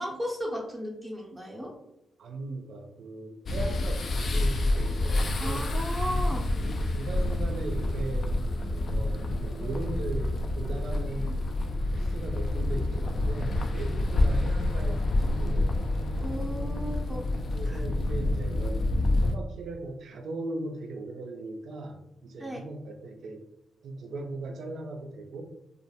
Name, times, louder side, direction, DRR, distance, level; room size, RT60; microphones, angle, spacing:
voice 1, 0.0-1.7 5.4-6.5 16.2-17.2 17.6-17.8 22.4-22.6, equal, 15° right, -2 dB, 0.6 m, -35 dB
voice 2, 2.2-5.7 6.6-8.4 8.9-11.6 11.9-16.0 17.5-18.8 19.2-23.4 23.8-25.4, right 2 dB, 70° right, 5 dB, 0.3 m, -38 dB
sound 1, 3.5-19.3, left 1 dB, 60° left, 0.3 m, -28 dB
2.3 x 2.1 x 2.7 m, 0.85 s
supercardioid pair, 45°, 0 cm